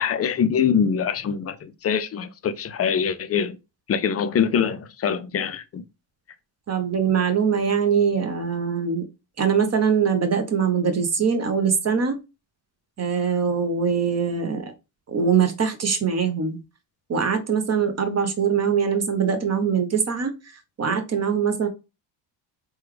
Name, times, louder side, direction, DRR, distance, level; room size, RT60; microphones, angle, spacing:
voice 1, 0.0-3.6 3.9-5.8, left 7 dB, 30° left, 0.4 m, -24 dB
voice 2, 6.7-9.0 9.4-12.2 13.0-14.7 15.1-16.6 17.1-20.3 20.8-21.7, right 6 dB, 30° right, 0.8 m, -22 dB
3.3 x 2.3 x 3.2 m
cardioid pair, 85°, 49 cm